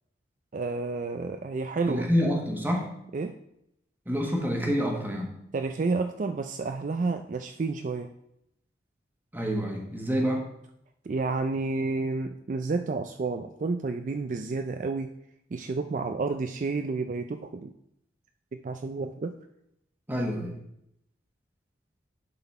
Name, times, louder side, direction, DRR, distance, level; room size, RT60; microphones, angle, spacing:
voice 1, 0.5-2.1 3.1-3.4 5.5-8.1 11.0-15.1 15.5-17.7 18.5-19.3, right 3 dB, 45° right, 6 dB, 0.4 m, -30 dB
voice 2, 1.9-2.9 4.1-5.3 9.3-10.4 20.1-20.5, equal, 10° right, 1 dB, 1.2 m, -27 dB
10.5 x 4.0 x 4.2 m, 0.78 s
head